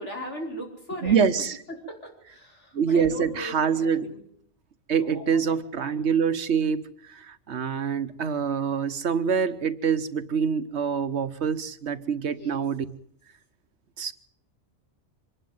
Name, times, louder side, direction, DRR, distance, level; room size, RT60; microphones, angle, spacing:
voice 1, 0.0-4.2 5.0-6.0 12.3-12.6, equal, 90° left, 1 dB, 5.2 m, -39 dB
voice 2, 1.0-1.5 2.7-4.1 4.9-12.9 14.0-14.1, right 6 dB, 70° right, 13 dB, 1.3 m, -25 dB
25.0 x 11.5 x 9.3 m, 0.66 s
omnidirectional pair, 1.2 m